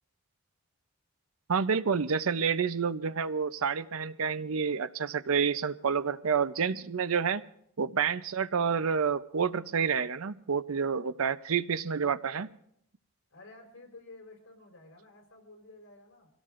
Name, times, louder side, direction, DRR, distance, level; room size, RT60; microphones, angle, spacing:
voice 1, 1.5-7.4 7.8-12.5, right 6 dB, 85° right, 13 dB, 0.6 m, -29 dB
voice 2, 13.3-16.3, left 2 dB, 80° left, 1 dB, 4.9 m, -52 dB
25.0 x 17.0 x 2.5 m, 0.71 s
head